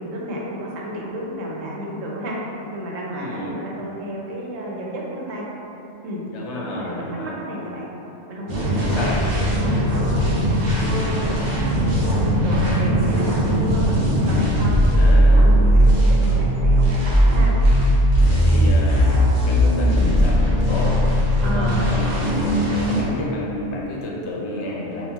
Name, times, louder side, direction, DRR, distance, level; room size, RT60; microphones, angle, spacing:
voice 1, 0.0-2.4 2.7-5.5 6.0-6.2 6.6-7.9 8.3-11.2 11.4-14.0 14.3-15.0 15.3-17.5 21.4-21.8, equal, 90° right, -3 dB, 1.1 m, -32 dB
voice 2, 3.1-3.6 6.3-7.4 8.8-9.2 14.9-15.6 18.3-21.0 21.4-22.4 22.9-25.1, left 1 dB, 70° left, -3 dB, 0.8 m, -31 dB
sound 1, 8.5-23.0, equal, 55° right, 0.9 m, -18 dB
sound 2, 10.9-11.8 12.6-13.4 14.3-15.1 16.2-17.0 18.2-19.2 20.2-21.0 22.3-23.3, equal, 20° left, 1.0 m, -37 dB
5.5 x 2.4 x 2.3 m, 2.9 s
omnidirectional pair, 1.3 m